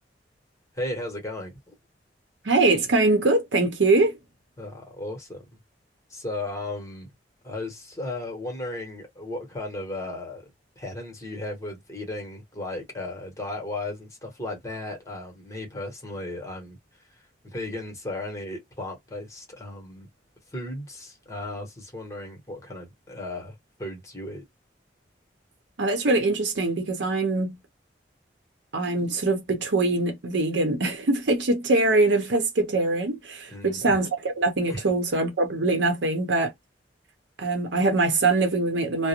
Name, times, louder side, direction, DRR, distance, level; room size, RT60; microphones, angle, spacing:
voice 1, 0.7-1.7 4.6-5.6 6.1-7.1 7.4-10.5 10.8-16.8 17.4-20.1 20.5-24.4 33.5-34.0 34.7-34.8, left 2 dB, 15° left, 1.1 m, -35 dB
voice 2, 2.4-4.2 25.8-27.6 28.7-36.5 37.4-39.1, right 2 dB, 85° right, 0.7 m, -23 dB
2.4 x 2.0 x 2.8 m
head